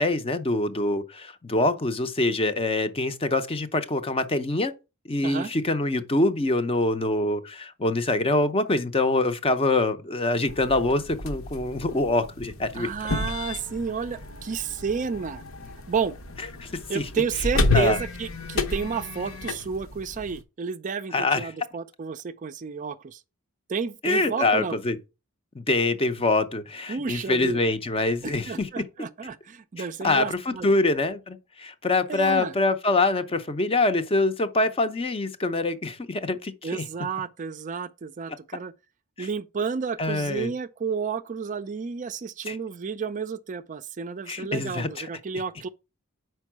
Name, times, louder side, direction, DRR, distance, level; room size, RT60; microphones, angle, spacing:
voice 1, 0.0-4.7 5.1-12.9 16.6-17.1 17.7-18.0 21.1-21.5 24.0-25.0 25.5-28.8 29.8-36.9 39.2-39.3 40.0-40.5 42.5-42.6 44.3-45.1, left 2 dB, 25° left, 0.6 m, -25 dB
sound 1, 10.5-20.4, left 3 dB, 70° left, 0.9 m, -31 dB
voice 2, 12.7-15.4 15.9-16.1 16.9-23.2 23.7-24.8 26.9-27.6 28.2-30.7 32.1-32.5 36.6-38.7 39.2-45.7, right 6 dB, 35° right, 0.4 m, -31 dB
5.3 x 4.5 x 6.0 m
head